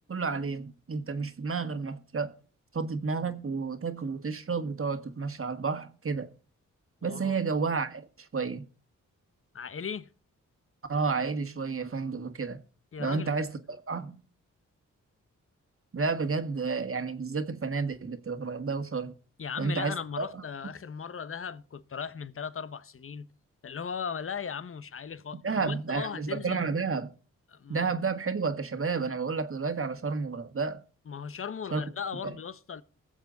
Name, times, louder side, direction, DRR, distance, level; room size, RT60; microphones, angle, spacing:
voice 1, 0.1-2.3 2.7-6.3 7.0-8.7 10.9-12.6 13.0-14.2 15.9-19.1 19.6-20.4 25.4-27.1 27.7-30.8 31.7-31.8 32.2-32.3, right 4 dB, 45° right, 1.7 m, -31 dB
voice 2, 7.0-7.4 9.5-10.1 12.9-13.4 19.4-23.3 23.6-26.7 27.5-27.9 31.1-32.8, left 6 dB, 45° left, 0.9 m, -37 dB
21.0 x 7.3 x 4.0 m
cardioid pair, 60°, 31 cm